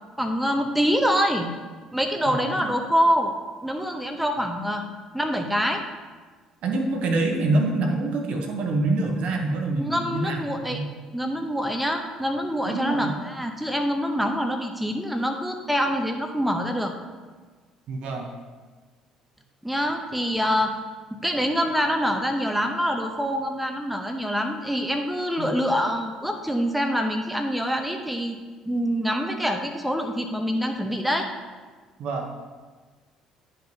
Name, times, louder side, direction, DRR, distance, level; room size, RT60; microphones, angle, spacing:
voice 1, 0.2-1.5 1.9-3.3 3.6-4.8 5.1-5.8 9.7-10.8 11.1-16.9 19.6-20.7 21.1-28.4 28.7-31.3, equal, 5° right, 4 dB, 0.8 m, -25 dB
voice 2, 2.3-2.7 6.6-10.9 12.6-13.1 17.9-18.3 25.4-25.5 32.0-32.3, right 2 dB, 55° right, 3 dB, 0.9 m, -26 dB
10.0 x 5.5 x 2.7 m, 1.4 s
figure-of-eight pair, 50°, 2 cm